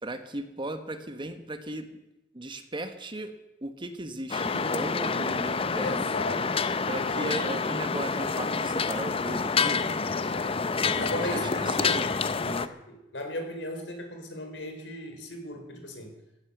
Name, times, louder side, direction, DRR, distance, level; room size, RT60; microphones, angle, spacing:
voice 1, 0.0-1.9 2.3-3.3 3.6-6.1 6.9-10.0 10.7-12.1 12.4-12.7, right 1 dB, 25° right, 9 dB, 1.3 m, -36 dB
sound 1, 4.3-12.7, left 4 dB, 30° left, 0.7 m, -28 dB
voice 2, 5.8-6.6 7.0-7.3 10.3-10.5 11.0-12.0 12.4-12.6 12.9-16.2, left 1 dB, 80° left, 5 dB, 3.7 m, -36 dB
15.5 x 11.0 x 7.9 m, 0.93 s
head